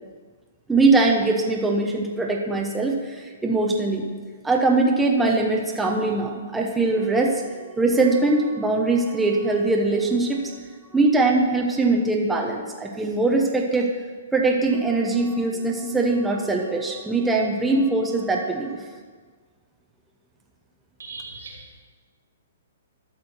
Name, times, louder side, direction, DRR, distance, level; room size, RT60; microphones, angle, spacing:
voice 1, 0.7-4.1 4.4-10.4 10.9-13.9 14.3-18.9, right 3 dB, 5° right, 0 dB, 0.9 m, -22 dB
voice 2, 21.0-21.8, right 3 dB, 80° right, 0 dB, 2.5 m, -39 dB
12.0 x 6.1 x 4.4 m, 1.5 s
hypercardioid pair, 130°, 0 cm